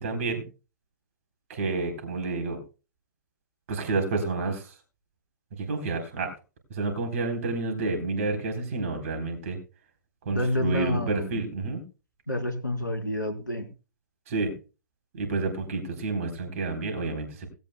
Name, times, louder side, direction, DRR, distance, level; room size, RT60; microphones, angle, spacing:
voice 1, 0.0-0.4 1.5-2.6 3.7-4.7 5.6-6.3 6.7-9.6 10.3-11.8 14.3-14.5 15.1-17.5, right 3 dB, 45° right, 5 dB, 3.8 m, -29 dB
voice 2, 10.3-11.4 12.3-13.7, left 1 dB, 85° left, 5 dB, 3.7 m, -29 dB
17.5 x 16.5 x 2.2 m, 0.33 s
figure-of-eight pair, 115°, 10 cm